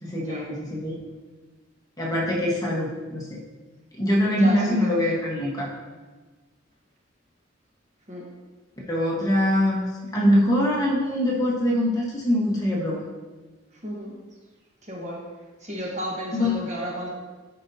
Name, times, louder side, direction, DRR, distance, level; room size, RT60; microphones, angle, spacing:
voice 1, 0.0-0.9 2.0-3.4 4.0-5.7 8.9-9.9 10.1-13.0 16.3-16.6, left 1 dB, 20° left, -4 dB, 1.3 m, -23 dB
voice 2, 4.4-5.3 8.1-8.2 13.8-14.1 14.9-15.2 15.6-17.1, equal, 40° right, -3 dB, 1.4 m, -33 dB
9.9 x 5.3 x 2.8 m, 1.3 s
head